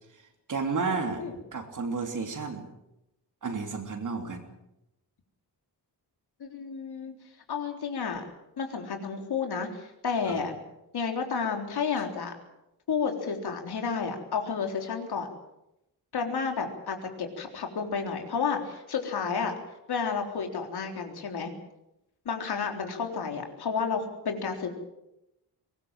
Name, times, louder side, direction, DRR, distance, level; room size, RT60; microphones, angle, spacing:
voice 1, 0.5-2.7 3.4-4.5 10.2-10.4, right 4 dB, 50° right, 4 dB, 3.4 m, -32 dB
voice 2, 6.4-7.2 7.5-8.2 8.6-10.5 10.9-12.3 12.9-15.3 16.1-19.6 19.9-21.5 22.3-24.7, left 5 dB, 70° left, 4 dB, 3.9 m, -31 dB
23.0 x 20.0 x 7.6 m, 0.88 s
wide cardioid pair, 155°, 39 cm